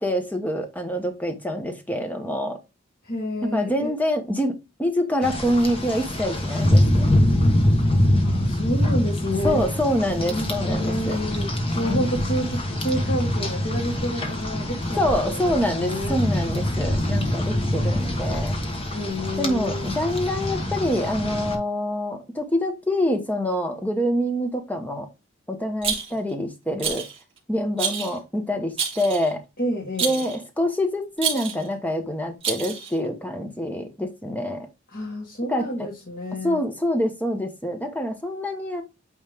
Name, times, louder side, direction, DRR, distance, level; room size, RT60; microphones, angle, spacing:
voice 1, 0.0-2.6 3.5-7.1 9.4-11.2 11.8-12.1 15.0-18.5 19.4-25.1 25.5-27.0 27.5-29.4 30.0-34.7 35.5-35.9 36.3-38.8, equal, 10° left, 1.0 m, -26 dB
voice 2, 3.0-3.9 8.2-9.7 10.1-16.2 18.9-19.9 29.6-30.3 34.9-36.6, equal, 50° left, 1.7 m, -29 dB
Rain, 5.2-21.5, left 1 dB, 30° left, 1.3 m, -24 dB
Rattle, 25.8-26.3 26.8-27.2 27.8-28.2 28.8-29.3 30.0-30.4 31.2-31.7 32.4-33.0, right 6 dB, 30° right, 2.1 m, -28 dB
8.8 x 3.2 x 3.5 m
head